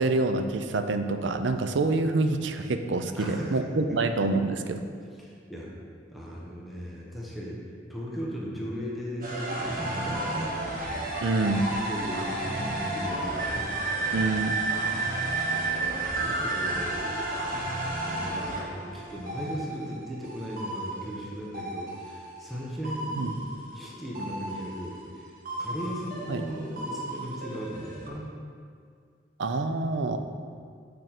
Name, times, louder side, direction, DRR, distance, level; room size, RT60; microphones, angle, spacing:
voice 1, 0.0-4.8 11.2-11.7 14.1-14.6 23.2-23.4 26.3-26.4 29.4-30.2, right 3 dB, 75° right, 8 dB, 0.5 m, -26 dB
voice 2, 3.2-4.2 5.2-5.7 6.1-7.6 7.9-10.5 11.9-13.8 15.8-17.5 18.0-23.5 23.7-25.3 25.6-28.3, equal, ahead, -6 dB, 1.0 m, -37 dB
sound 1, 9.2-22.5 22.8-25.2 25.4-28.1, right 2 dB, 50° right, 1.2 m, -32 dB
6.6 x 5.2 x 6.0 m, 2.2 s
head